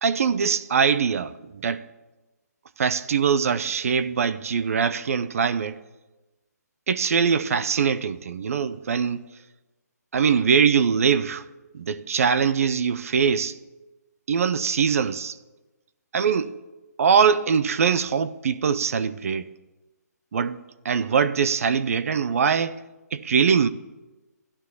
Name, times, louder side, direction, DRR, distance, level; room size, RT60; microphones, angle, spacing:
voice 1, 0.0-1.8 2.8-5.8 6.9-9.3 10.1-11.4 11.7-13.6 14.3-15.4 16.1-16.5 17.0-19.5 20.3-22.8 23.1-23.7, right 6 dB, 55° right, 0.6 m, -22 dB
11.5 x 9.9 x 8.2 m
hypercardioid pair, 155°, 9 cm